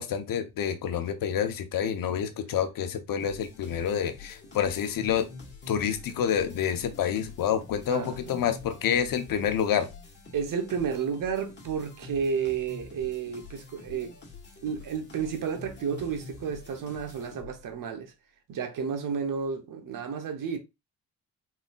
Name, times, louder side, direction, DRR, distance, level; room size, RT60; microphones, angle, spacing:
voice 1, 0.0-5.3 5.7-9.9, left 8 dB, 65° left, 0.9 m, -28 dB
sound 1, 3.2-17.8, left 4 dB, 30° left, 1.8 m, -47 dB
voice 2, 7.9-8.3 10.3-14.1 14.6-18.1 18.5-20.6, right 6 dB, 60° right, 1.0 m, -31 dB
4.2 x 4.1 x 2.4 m
supercardioid pair, 75°, 36 cm